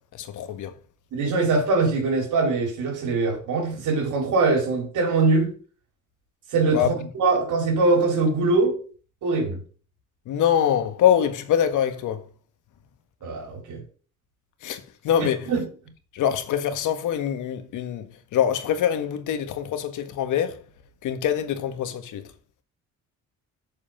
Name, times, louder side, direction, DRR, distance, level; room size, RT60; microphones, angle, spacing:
voice 1, 0.1-0.7 6.7-6.9 10.3-12.2 14.6-15.5 16.1-18.0 18.3-20.6 21.0-22.2, left 9 dB, 80° left, 1.7 m, -24 dB
voice 2, 1.1-5.5 6.5-8.8 9.2-9.6 13.2-13.8 15.5-15.7, right 3 dB, 80° right, 4.5 m, -22 dB
8.1 x 7.0 x 5.1 m
cardioid pair, 90°, 30 cm